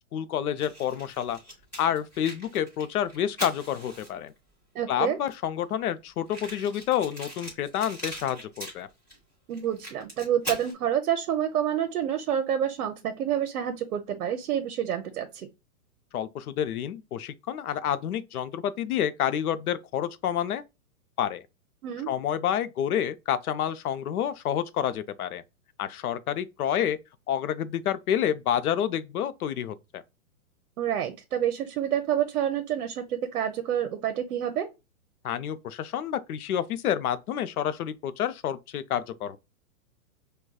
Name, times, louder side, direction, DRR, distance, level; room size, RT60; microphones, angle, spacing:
voice 1, 0.1-1.4 1.8-4.3 4.9-8.9 16.1-20.6 21.2-21.4 22.1-25.4 25.8-27.0 27.3-30.0 35.2-39.4, left 10 dB, 80° left, 0.6 m, -29 dB
Fire, 0.6-4.4 5.1-5.2 5.3-5.4 5.6-5.7 6.3-9.2 9.5-10.7, right 1 dB, 5° left, 0.5 m, -40 dB
voice 2, 4.7-5.2 9.5-15.5 21.8-22.1 30.8-34.7, right 10 dB, 75° right, 0.7 m, -28 dB
4.8 x 2.2 x 2.2 m
hypercardioid pair, 155°, 44 cm